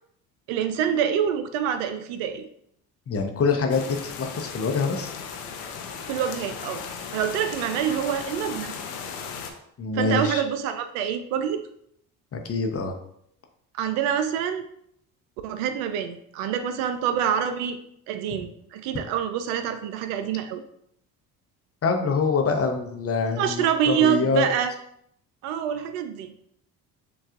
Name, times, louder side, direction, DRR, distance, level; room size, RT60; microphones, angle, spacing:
voice 1, 0.5-2.5 6.1-6.8 7.1-8.7 9.9-11.6 13.8-14.7 15.4-17.8 18.1-20.6 23.4-24.7 25.4-26.3, right 9 dB, 70° right, 9 dB, 0.5 m, -26 dB
voice 2, 3.1-5.1 9.8-10.4 12.3-12.9 21.8-24.5, left 4 dB, 30° left, 4 dB, 0.7 m, -25 dB
sound 1, 3.7-9.5, left 6 dB, 80° left, 0.6 m, -36 dB
6.7 x 2.3 x 2.4 m, 0.72 s
hypercardioid pair, 55°, 46 cm